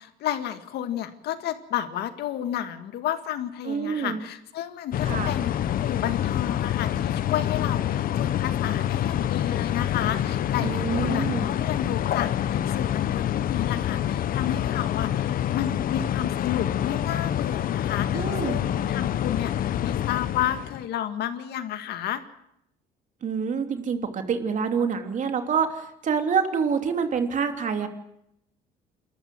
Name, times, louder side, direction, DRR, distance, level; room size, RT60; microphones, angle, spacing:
voice 1, 0.0-5.5 5.8-22.2, left 11 dB, 75° left, 9 dB, 2.0 m, -32 dB
voice 2, 3.6-4.2 5.0-5.3 10.6-11.5 18.1-18.6 23.2-27.9, right 6 dB, 50° right, 6 dB, 3.2 m, -27 dB
sound 1, 4.9-20.9, left 11 dB, 55° left, 0.9 m, -26 dB
28.0 x 14.0 x 7.8 m, 0.76 s
cardioid pair, 110°, 17 cm